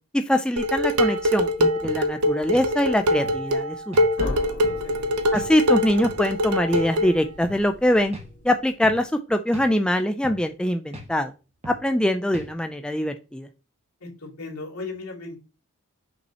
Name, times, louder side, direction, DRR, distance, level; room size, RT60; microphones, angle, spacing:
voice 1, 0.1-4.0 4.2-4.3 5.3-8.2 8.4-11.3 11.7-13.5, left 1 dB, 5° left, 7 dB, 0.3 m, -23 dB
Dishes pots and pans, 0.6-7.2, left 1 dB, 85° right, 0.8 m, -23 dB
sound 1, 1.8-2.0 2.5-2.7 3.2-3.4 3.9-4.1 4.6-4.8 5.3-5.5 6.0-6.2 6.7-6.9 7.4-7.6 8.1-8.3 8.8-9.0 9.5-9.7 10.2-10.4 10.9-11.1 11.6-11.8 12.3-12.5, equal, 30° right, 1.4 m, -39 dB
sound 2, 4.2-8.9, left 1 dB, 55° left, 1.5 m, -38 dB
voice 2, 4.7-5.1 14.0-15.4, left 3 dB, 70° left, -3 dB, 2.9 m, -37 dB
6.2 x 5.3 x 2.9 m, 0.31 s
head